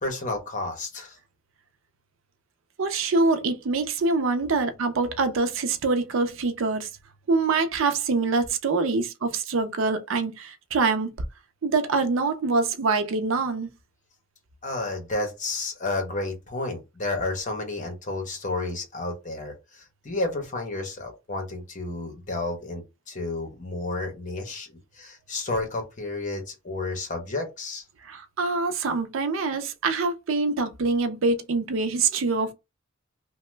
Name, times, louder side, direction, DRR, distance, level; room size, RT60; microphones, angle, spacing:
voice 1, 0.0-1.2 14.6-27.8, left 2 dB, 40° left, 0.9 m, -31 dB
voice 2, 2.8-6.9 7.3-11.1 11.6-13.7 28.0-32.5, right 3 dB, 70° right, 0.5 m, -25 dB
2.8 x 2.1 x 3.2 m
head